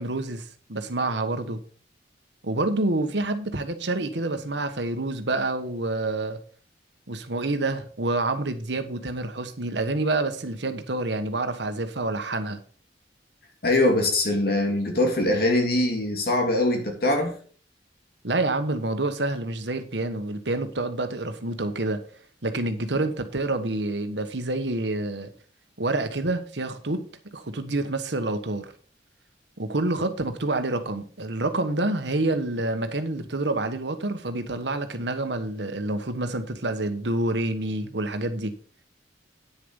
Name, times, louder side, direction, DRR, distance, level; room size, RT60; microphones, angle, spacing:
voice 1, 0.0-1.6 2.4-6.4 7.1-12.6 18.2-22.0 22.4-25.3 25.8-27.0 27.3-28.7 29.6-38.5, right 2 dB, 70° right, 1.3 m, -28 dB
voice 2, 13.6-17.3, left 1 dB, 55° left, 2.9 m, -22 dB
9.7 x 6.8 x 5.4 m
head